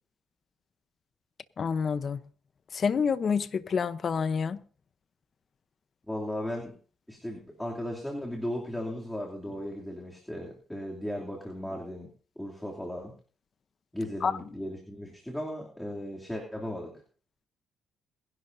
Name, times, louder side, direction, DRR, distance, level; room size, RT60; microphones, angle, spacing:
voice 1, 1.6-2.2 2.7-4.6 14.2-14.3, left 6 dB, 45° left, 0.8 m, -27 dB
voice 2, 6.1-6.8 7.1-12.1 12.4-13.1 13.9-17.0, left 1 dB, 5° left, 2.9 m, -36 dB
22.0 x 11.0 x 2.7 m
cardioid pair, 90°, 0 cm